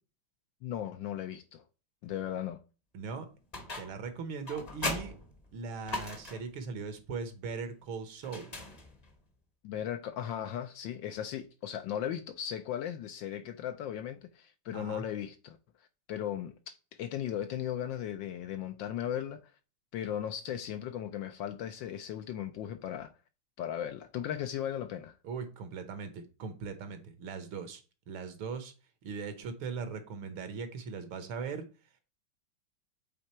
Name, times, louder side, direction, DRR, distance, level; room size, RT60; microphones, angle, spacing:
voice 1, 0.6-1.6 2.0-2.6 9.6-15.6 16.1-19.4 19.9-23.1 23.6-25.1, left 10 dB, 75° left, 1.1 m, -37 dB
voice 2, 2.9-3.3 3.8-5.2 5.5-8.5 14.7-15.0 25.2-27.8 28.1-28.7 29.0-31.7, right 5 dB, 75° right, 1.8 m, -39 dB
sound 1, 3.5-4.1 4.5-6.6 8.2-9.2, left 2 dB, 30° left, 0.8 m, -39 dB
7.9 x 3.7 x 4.3 m
omnidirectional pair, 2.4 m